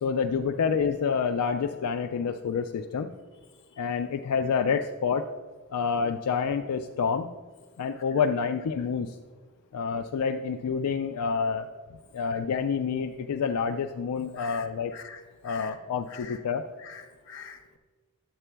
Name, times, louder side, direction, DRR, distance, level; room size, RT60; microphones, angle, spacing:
voice 1, 0.0-3.1 3.8-5.3 5.7-7.3 7.8-9.2 9.7-11.7 12.1-14.9 15.4-16.7, left 6 dB, 85° left, 5 dB, 0.4 m, -28 dB
voice 2, 14.4-15.8 16.1-16.4 16.8-17.6, left 6 dB, 60° left, 3 dB, 1.0 m, -45 dB
11.0 x 8.1 x 2.2 m, 1.4 s
head